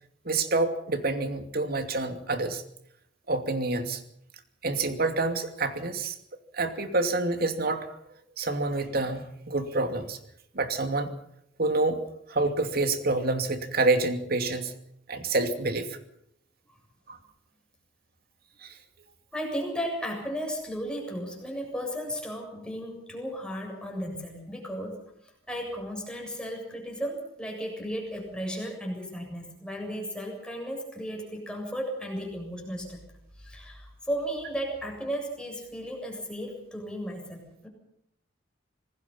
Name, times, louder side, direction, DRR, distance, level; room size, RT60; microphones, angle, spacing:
voice 1, 0.2-2.6 3.3-4.0 4.6-6.2 6.5-8.0 8.4-10.2 10.5-11.1 11.6-12.0 12.3-14.8 15.1-15.9 17.1-17.2 18.6-18.7, right 2 dB, 55° right, 7 dB, 2.7 m, -27 dB
voice 2, 19.3-25.0 25.5-33.0 33.4-37.7, equal, 5° left, 1 dB, 7.5 m, -35 dB
26.5 x 20.0 x 5.7 m, 0.71 s
head